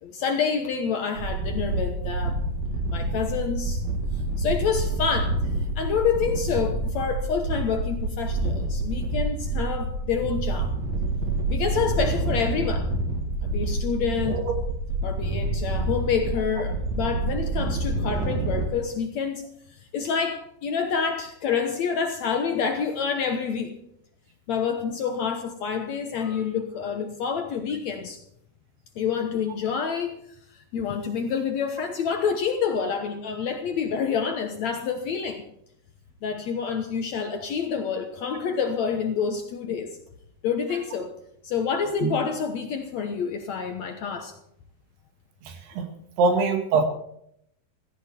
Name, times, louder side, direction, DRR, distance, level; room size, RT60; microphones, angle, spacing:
voice 1, 0.0-2.4 2.9-3.8 4.4-5.4 5.7-10.7 11.5-12.9 13.4-14.4 15.0-19.4 19.7-23.7 24.5-28.2 28.9-30.2 30.5-35.4 36.2-40.0 40.4-41.1 41.4-44.3, left 6 dB, 70° left, 6 dB, 1.7 m, -28 dB
sound 1, 1.2-18.7, right 2 dB, 50° right, 3.2 m, -27 dB
voice 2, 46.2-46.8, right 4 dB, 80° right, 6 dB, 3.9 m, -22 dB
16.0 x 15.0 x 4.4 m, 0.74 s
omnidirectional pair, 4.5 m